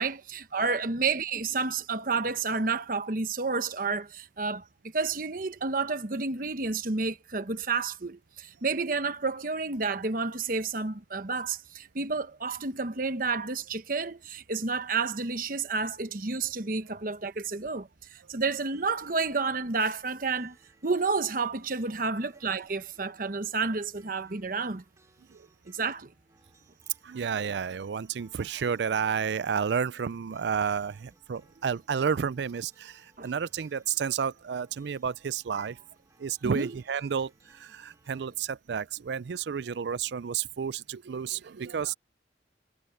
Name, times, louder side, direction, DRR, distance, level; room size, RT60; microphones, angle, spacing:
voice 1, 0.0-4.6 4.9-20.6 20.8-24.8 25.7-26.1 33.2-33.3 36.5-36.7, right 4 dB, 50° right, 1.0 m, -30 dB
sound 1, 18.5-38.3, right 2 dB, 15° right, 5.4 m, -65 dB
voice 2, 27.0-35.8 36.2-41.9, right 7 dB, 70° right, 0.4 m, -31 dB
head